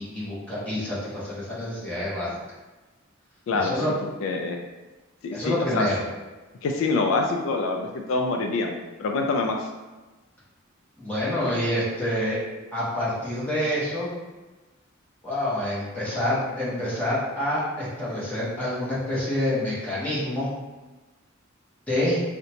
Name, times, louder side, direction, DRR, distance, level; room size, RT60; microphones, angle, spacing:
voice 1, 0.0-2.3 3.5-3.9 5.3-6.0 11.0-12.4 12.7-14.1 15.2-20.5 21.9-22.2, left 1 dB, 5° left, -9 dB, 1.0 m, -27 dB
voice 2, 4.2-4.6 5.2-5.9 6.6-9.7, left 3 dB, 75° left, 3 dB, 0.3 m, -25 dB
3.8 x 2.1 x 2.8 m, 1.2 s
head